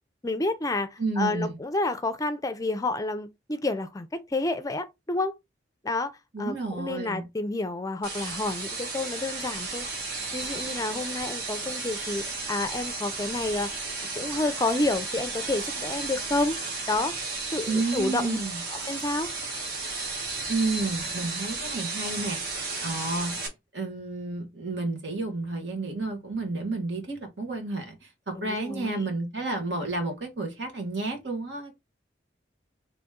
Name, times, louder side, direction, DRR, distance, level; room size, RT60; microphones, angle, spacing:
voice 1, 0.2-5.3 5.8-6.1 6.4-9.9 10.3-13.8 14.1-16.6 16.9-17.2 17.5-18.4 18.7-19.3 28.3-29.0, left 2 dB, 20° left, 0.4 m, -29 dB
voice 2, 1.0-1.6 6.3-7.2 17.7-18.6 20.5-22.4 22.8-23.4 23.7-31.8, right 3 dB, 75° right, 1.6 m, -31 dB
sound 1, 8.0-23.5, right 3 dB, 60° right, 1.8 m, -34 dB
4.1 x 3.0 x 3.6 m
head